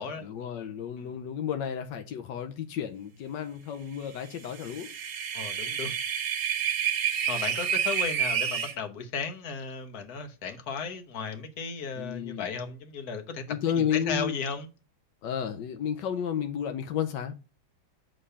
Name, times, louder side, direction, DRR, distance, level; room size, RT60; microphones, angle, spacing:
voice 1, 0.2-4.9 12.0-12.5 13.5-14.3 15.2-17.3, left 9 dB, 90° left, 1.4 m, -32 dB
sound 1, 4.4-8.7, right 8 dB, 65° right, 1.5 m, -29 dB
voice 2, 5.3-6.0 7.3-14.7, left 5 dB, 60° left, 1.5 m, -35 dB
6.7 x 3.8 x 5.5 m
omnidirectional pair, 1.9 m